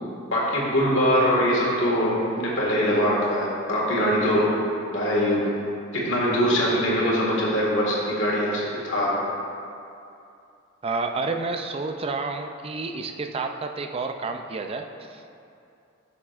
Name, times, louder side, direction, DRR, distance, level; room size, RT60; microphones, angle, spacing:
voice 1, 0.3-4.5 4.9-5.5 5.9-9.2, equal, 60° left, -5 dB, 1.8 m, -22 dB
voice 2, 10.8-14.8 15.1-15.2, right 3 dB, 25° right, 5 dB, 0.3 m, -29 dB
9.7 x 7.0 x 2.5 m, 2.6 s
head